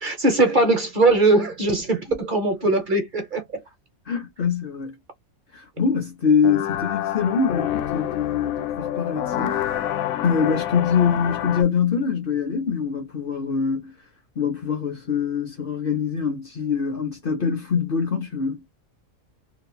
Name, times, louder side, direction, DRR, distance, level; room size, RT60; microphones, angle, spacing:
voice 1, 0.0-3.6, right 2 dB, 45° right, 0.8 m, -20 dB
voice 2, 4.1-4.9 5.5-9.6 10.2-13.9 14.4-18.6, left 6 dB, 55° left, 0.7 m, -24 dB
sound 1, 6.4-11.6, left 11 dB, 90° left, 1.0 m, -27 dB
2.8 x 2.6 x 2.2 m
omnidirectional pair, 1.4 m